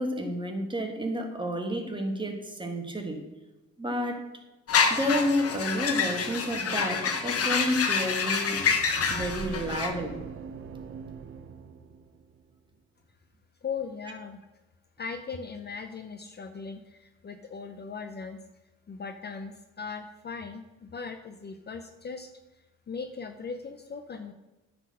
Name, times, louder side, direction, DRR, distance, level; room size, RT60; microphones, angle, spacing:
voice 1, 0.0-3.2 3.8-4.3 4.9-8.6 9.1-10.2, equal, 15° right, 3 dB, 1.6 m, -30 dB
sound 1, 4.7-9.9, left 5 dB, 50° left, 1.1 m, -27 dB
sound 2, 9.1-12.6, right 6 dB, 45° right, 0.8 m, -41 dB
voice 2, 13.6-14.4 15.0-18.4 18.9-22.3 22.9-24.3, left 5 dB, 35° left, 7 dB, 0.6 m, -38 dB
9.6 x 4.4 x 6.4 m, 1.1 s
cardioid pair, 90°, 30 cm